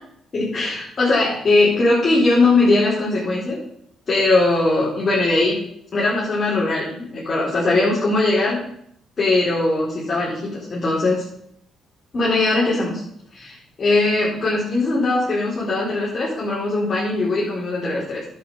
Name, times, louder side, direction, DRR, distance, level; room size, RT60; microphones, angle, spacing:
voice 1, 0.3-3.6 4.1-5.6 5.9-8.6 9.2-11.2 12.1-13.0 13.3-18.2, left 2 dB, 40° left, -7 dB, 4.3 m, -20 dB
11.0 x 6.6 x 6.4 m, 0.70 s
cardioid pair, 90°, 0 cm